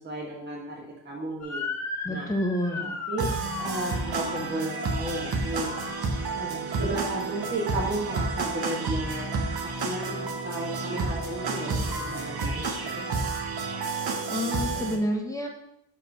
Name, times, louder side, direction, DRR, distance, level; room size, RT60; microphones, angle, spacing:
voice 1, 0.0-1.6 2.1-2.3 2.8-3.3 3.6-5.7 6.3-13.0, right 2 dB, 25° right, -3 dB, 1.3 m, -34 dB
Motor vehicle (road) / Siren, 1.4-6.7, left 4 dB, 40° left, 1.4 m, -37 dB
voice 2, 2.0-2.9 14.3-15.5, left 1 dB, 10° left, 0 dB, 1.1 m, -28 dB
sound 1, 3.2-15.0, right 3 dB, 60° right, 1.2 m, -30 dB
5.3 x 4.6 x 5.9 m, 0.77 s
cardioid pair, 95°, 41 cm